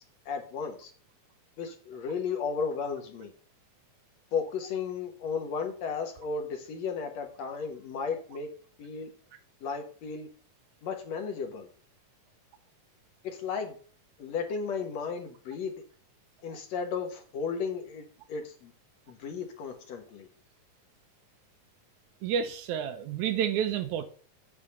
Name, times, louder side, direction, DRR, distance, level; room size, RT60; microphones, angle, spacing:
voice 1, 0.3-0.9 1.6-3.3 4.3-8.5 8.8-9.1 9.6-10.3 10.8-11.7 13.2-13.7 14.2-15.7 16.4-18.7 19.1-20.3, left 5 dB, 65° left, 2.1 m, -34 dB
voice 2, 22.2-24.0, right 8 dB, 75° right, 2.0 m, -29 dB
8.6 x 4.1 x 6.7 m
omnidirectional pair, 3.7 m